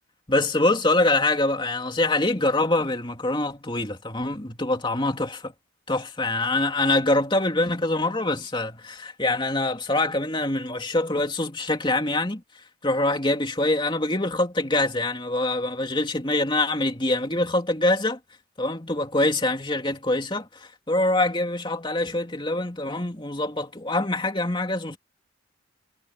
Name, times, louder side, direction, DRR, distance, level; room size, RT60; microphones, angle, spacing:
voice 1, 0.3-5.5 5.9-12.4 12.8-18.2 18.6-25.0, left 2 dB, 25° left, 3.0 m, -24 dB
head